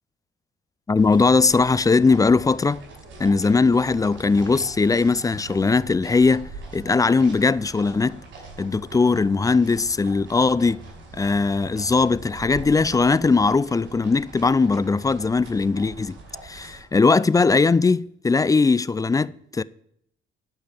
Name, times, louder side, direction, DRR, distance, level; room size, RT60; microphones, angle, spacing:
voice 1, 0.9-2.8 3.2-8.2 8.6-10.8 11.1-16.2 16.4-19.6, left 4 dB, 15° left, 0.4 m, -20 dB
sound 1, 0.9-16.8, right 3 dB, 70° right, 5.4 m, -42 dB
12.0 x 5.7 x 8.3 m
cardioid pair, 90°, 20 cm